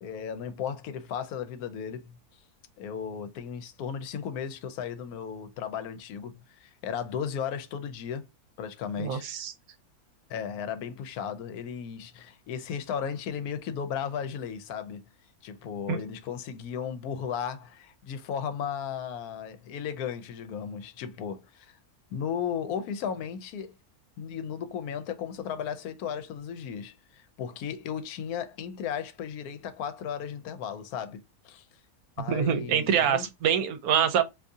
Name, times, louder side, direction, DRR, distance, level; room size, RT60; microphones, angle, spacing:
voice 1, 0.0-2.2 2.8-8.3 8.6-9.3 10.3-15.0 15.4-21.8 22.1-23.7 24.2-31.2 31.4-31.6 32.2-33.3, left 8 dB, 80° left, 1.1 m, -35 dB
voice 2, 9.0-9.5 15.9-16.0 32.3-34.2, right 8 dB, 80° right, 1.1 m, -25 dB
2.7 x 2.6 x 3.5 m
omnidirectional pair, 1.6 m